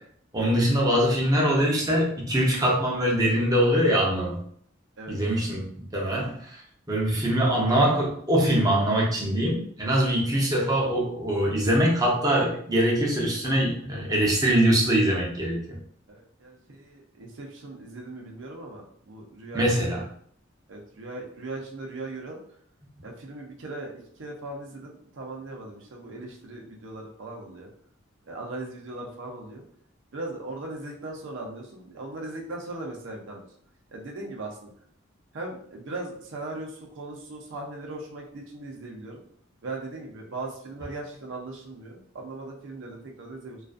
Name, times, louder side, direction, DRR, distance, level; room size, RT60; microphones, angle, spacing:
voice 1, 0.3-4.4 5.1-5.7 5.9-6.6 6.9-15.8 19.5-20.0, right 1 dB, 20° right, -3 dB, 0.6 m, -23 dB
voice 2, 16.1-19.9 20.7-22.4 23.0-27.7 28.3-29.6 30.1-33.5 33.9-34.7 35.3-39.2 39.6-43.6, right 2 dB, 70° right, 0 dB, 0.6 m, -38 dB
2.4 x 2.3 x 2.4 m, 0.62 s
head